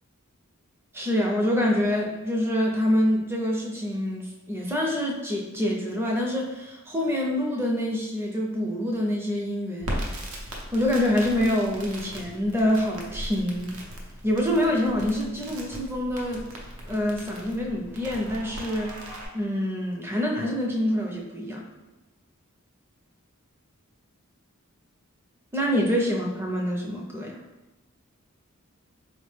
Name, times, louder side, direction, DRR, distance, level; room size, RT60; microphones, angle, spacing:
voice 1, 0.9-10.2 10.7-13.8 14.2-16.5 16.9-18.9 19.3-21.6 25.5-27.4, left 1 dB, 10° right, -1 dB, 0.5 m, -26 dB
Crackle, 9.8-19.3, equal, 80° right, 0.7 m, -38 dB
4.2 x 2.1 x 3.2 m, 1.1 s
head